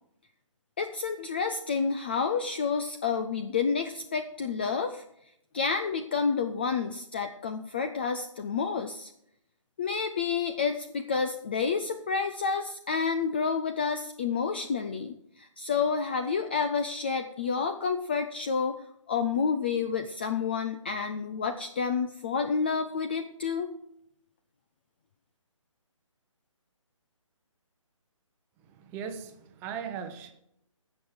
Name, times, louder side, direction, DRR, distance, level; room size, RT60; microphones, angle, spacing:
voice 1, 0.8-5.0 5.5-9.1 9.8-18.8 19.1-23.7, left 5 dB, 20° left, 7 dB, 0.3 m, -29 dB
voice 2, 28.6-30.3, right 7 dB, 15° right, 6 dB, 0.8 m, -38 dB
16.0 x 6.2 x 4.9 m, 0.76 s
hypercardioid pair, 160°, 17 cm